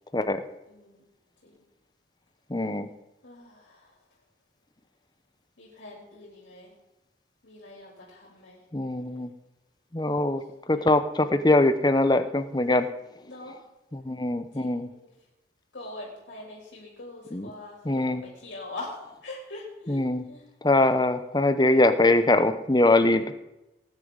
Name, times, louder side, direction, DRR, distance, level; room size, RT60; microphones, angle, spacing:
voice 1, 0.7-1.1 1.4-1.5 3.2-4.0 5.6-6.7 7.4-8.6 10.7-10.9 13.2-13.6 14.5-15.1 15.7-20.5, left 2 dB, 90° left, -3 dB, 3.4 m, -43 dB
voice 2, 2.5-2.9 8.7-9.3 9.9-10.4 10.7-12.9 13.9-14.9 17.3-17.5 17.8-18.2 19.9-20.2 20.6-23.3, left 2 dB, 25° left, 10 dB, 0.8 m, -22 dB
18.5 x 9.7 x 4.0 m, 0.96 s
head